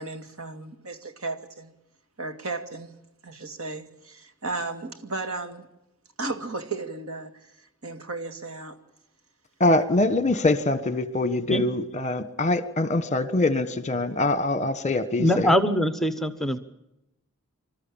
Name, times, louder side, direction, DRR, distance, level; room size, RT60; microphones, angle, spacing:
voice 1, 0.0-1.7 2.2-2.9 3.2-5.7 6.2-7.3 7.8-8.8, right 3 dB, 75° right, 2.4 m, -34 dB
voice 2, 9.6-15.5, left 2 dB, 30° left, 1.3 m, -24 dB
voice 3, 15.2-16.6, equal, ahead, 1.0 m, -22 dB
27.0 x 13.5 x 8.8 m
head